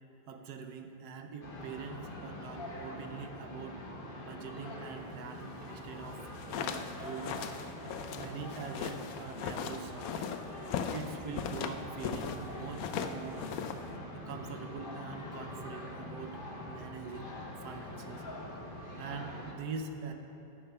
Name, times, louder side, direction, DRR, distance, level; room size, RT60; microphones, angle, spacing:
voice 1, 0.3-3.8 4.2-7.5 8.1-10.3 10.8-13.5 14.1-16.4 16.7-17.3 17.6-18.2 19.0-20.1, right 5 dB, 70° right, 6 dB, 1.2 m, -43 dB
sound 1, 1.4-19.5, left 1 dB, 35° left, 1.2 m, -44 dB
sound 2, 6.2-12.4 12.7-14.0, left 7 dB, 70° left, 0.9 m, -38 dB
10.5 x 7.6 x 5.6 m, 3.0 s
omnidirectional pair, 1.9 m